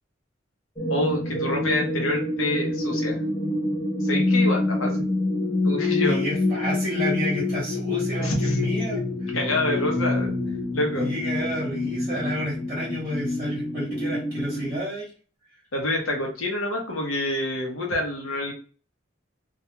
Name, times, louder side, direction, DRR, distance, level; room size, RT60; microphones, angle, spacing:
sound 1, 0.8-14.8, left 2 dB, 25° left, 0.5 m, -26 dB
voice 1, 0.9-3.2 4.0-5.0 5.6-6.2 8.2-8.6 9.3-10.3 10.7-11.1 15.7-18.5, left 1 dB, 90° left, 1 dB, 0.7 m, -27 dB
voice 2, 6.0-9.3 10.9-15.1, equal, 25° right, -5 dB, 0.9 m, -31 dB
2.3 x 2.2 x 2.8 m, 0.39 s
head